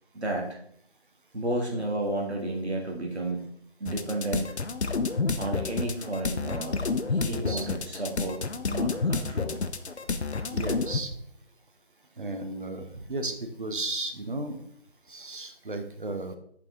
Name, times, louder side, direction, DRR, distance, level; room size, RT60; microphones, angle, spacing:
voice 1, 0.1-0.6 1.3-3.5 3.8-4.5 5.4-6.8 7.1-9.6, right 1 dB, 85° right, 0 dB, 1.8 m, -32 dB
sound 1, 3.9-11.0, left 4 dB, 90° left, 0.7 m, -29 dB
voice 2, 7.2-7.7 10.5-11.1 12.2-14.6 15.1-16.4, right 2 dB, 50° right, 7 dB, 0.8 m, -34 dB
5.5 x 5.4 x 3.6 m, 0.66 s
figure-of-eight pair, 160°, 32 cm